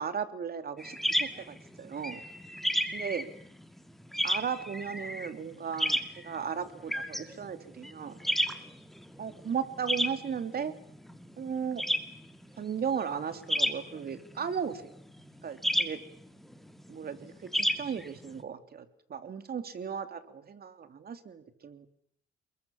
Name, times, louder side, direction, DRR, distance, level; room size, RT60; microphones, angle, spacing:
voice 1, 0.0-2.2 2.9-3.3 4.2-8.2 9.2-10.7 11.4-11.8 12.6-14.9 15.4-16.0 16.9-21.9, right 7 dB, 50° right, 10 dB, 3.0 m, -36 dB
sound 1, 0.8-18.4, equal, ahead, 2.7 m, -33 dB
29.5 x 22.0 x 7.2 m, 0.69 s
cardioid pair, 90°, 20 cm